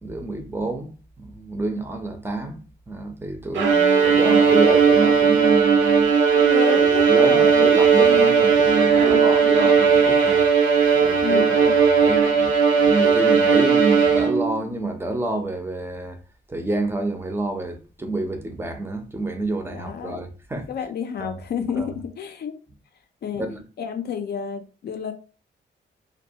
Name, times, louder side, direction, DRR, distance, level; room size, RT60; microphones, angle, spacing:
voice 1, 0.0-2.6 2.9-6.1 6.8-10.5 10.9-16.2 16.5-20.7 21.2-21.3 21.8-21.9 23.3-23.6, right 2 dB, 10° right, 0.5 m, -28 dB
Bowed string instrument, 3.6-14.6, right 6 dB, 85° right, 0.5 m, -17 dB
voice 2, 3.7-4.4 6.4-7.7 8.0-8.5 9.0-9.6 11.2-11.7 19.7-20.2 20.7-22.6 23.2-23.5 23.8-25.1, left 7 dB, 60° left, 0.5 m, -30 dB
2.3 x 2.2 x 2.7 m
cardioid pair, 100°, 19 cm